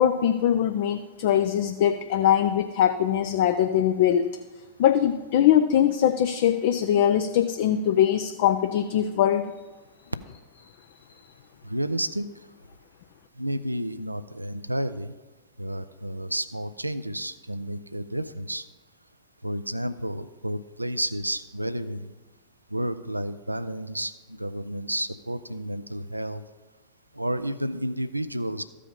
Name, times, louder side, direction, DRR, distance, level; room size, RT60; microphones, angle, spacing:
voice 1, 0.0-4.2 4.8-9.4, left 10 dB, 55° left, 9 dB, 0.4 m, -22 dB
voice 2, 11.6-12.3 13.4-15.1 15.6-18.6 19.4-22.1 22.7-26.4 27.1-28.6, right 1 dB, 85° right, 12 dB, 0.4 m, -31 dB
13.5 x 5.0 x 5.2 m, 1.2 s
figure-of-eight pair, 90°, 0 cm